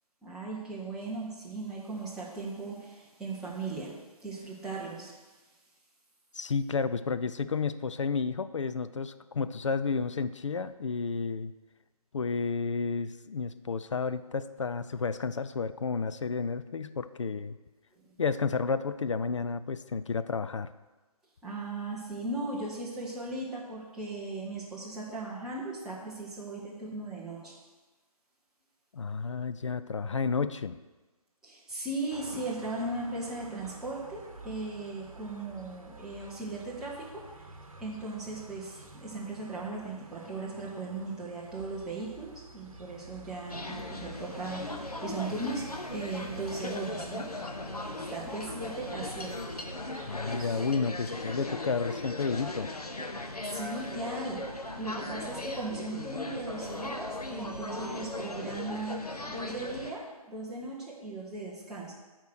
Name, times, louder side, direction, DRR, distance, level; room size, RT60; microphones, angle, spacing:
voice 1, 0.2-5.2 17.9-18.2 21.4-27.6 31.4-37.4 37.8-47.5 48.0-49.5 53.4-54.5 54.8-59.0 59.3-61.9, right 2 dB, 5° right, -6 dB, 0.6 m, -38 dB
voice 2, 6.3-11.5 12.1-17.6 18.2-20.7 28.9-30.8 50.1-52.7, left 5 dB, 55° left, 12 dB, 0.4 m, -31 dB
sound 1, 32.1-50.6, right 3 dB, 65° right, 1.0 m, -50 dB
sound 2, 43.5-59.9, left 2 dB, 85° left, 0.9 m, -38 dB
8.1 x 4.4 x 6.3 m, 1.2 s
figure-of-eight pair, 145°, 19 cm